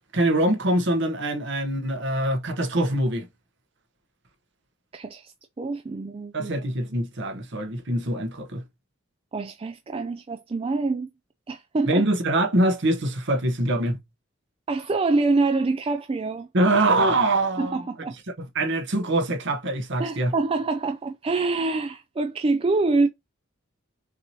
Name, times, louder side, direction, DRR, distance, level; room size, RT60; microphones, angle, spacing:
voice 1, 0.1-3.3 6.3-8.6 11.8-14.0 16.5-17.8 18.5-20.3, right 1 dB, 55° right, 1.0 m, -23 dB
voice 2, 4.9-6.5 9.3-11.1 11.5-12.0 14.7-16.5 17.6-18.2 20.0-23.1, right 3 dB, 25° right, 0.3 m, -25 dB
6.1 x 2.7 x 2.9 m
head